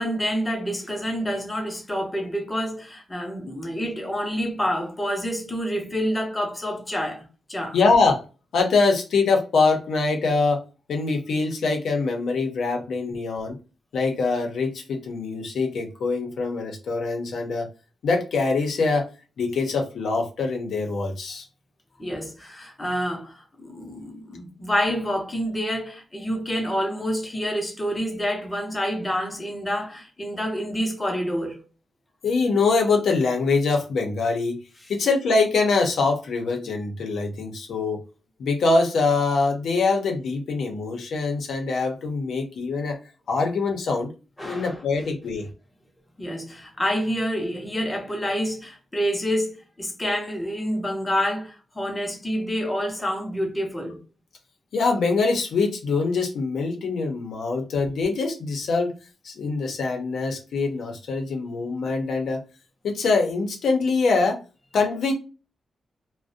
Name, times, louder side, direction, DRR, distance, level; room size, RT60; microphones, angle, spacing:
voice 1, 0.0-7.8 22.0-31.6 44.4-44.8 46.2-54.0, equal, 15° left, 0.5 m, -28 dB
voice 2, 7.7-8.2 8.5-10.6 10.9-13.6 13.9-17.7 18.0-19.1 19.4-21.5 32.2-34.6 34.9-38.0 38.4-43.0 43.3-44.1 44.4-45.5 54.7-59.0 59.2-62.4 62.8-64.4 64.7-65.1, left 4 dB, 80° left, 0.6 m, -23 dB
2.4 x 2.0 x 2.5 m
wide cardioid pair, 140°, 0 cm